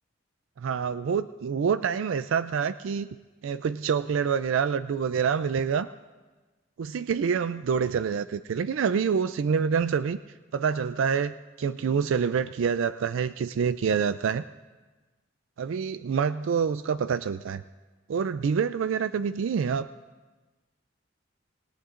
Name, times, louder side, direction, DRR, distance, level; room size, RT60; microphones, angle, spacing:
voice 1, 0.6-3.1 3.4-5.9 6.8-10.2 10.5-14.4 15.6-17.6 18.1-19.9, right 6 dB, 75° right, 12 dB, 0.4 m, -27 dB
27.0 x 18.0 x 2.5 m, 1.2 s
head